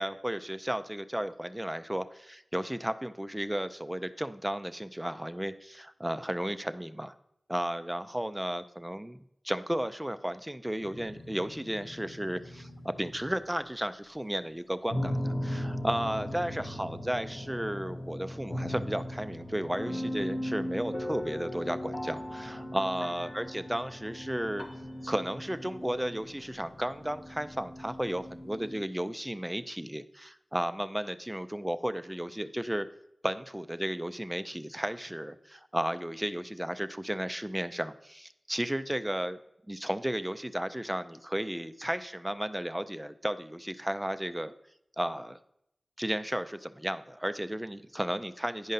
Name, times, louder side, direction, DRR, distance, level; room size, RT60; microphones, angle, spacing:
voice 1, 0.0-7.1 7.5-9.2 9.4-24.7 25.0-32.9 33.2-39.4 39.7-44.5 45.0-45.4 46.0-48.7, right 1 dB, 10° right, 11 dB, 0.5 m, -34 dB
sound 1, 10.8-13.4 14.9-28.8, equal, 50° left, 1.1 m, -38 dB
10.0 x 5.2 x 4.0 m, 0.79 s
cardioid pair, 40°, 0 cm